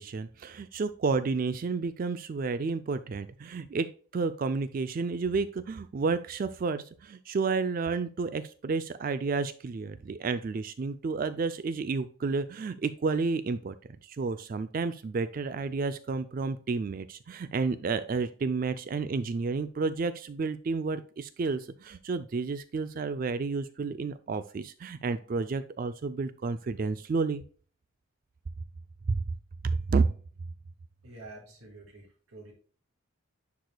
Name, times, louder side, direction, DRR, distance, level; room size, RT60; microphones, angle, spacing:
voice 1, 0.0-13.8 14.0-27.4 29.1-29.2 29.6-30.1, right 4 dB, 40° right, 12 dB, 0.3 m, -31 dB
voice 2, 31.0-32.5, right 2 dB, 80° right, -2 dB, 2.2 m, -48 dB
10.5 x 4.8 x 2.2 m, 0.41 s
head